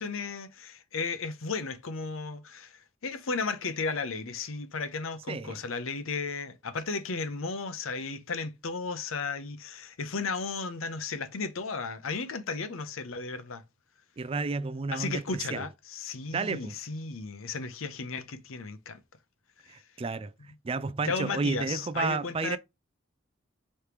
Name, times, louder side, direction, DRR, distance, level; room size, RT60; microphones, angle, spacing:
voice 1, 0.0-13.6 14.9-19.0 21.0-22.6, left 4 dB, 90° left, 0.7 m, -34 dB
voice 2, 5.3-5.6 14.2-15.7 16.3-16.8 19.7-20.3 20.6-22.6, right 4 dB, 30° right, 0.3 m, -31 dB
5.0 x 3.2 x 2.9 m
head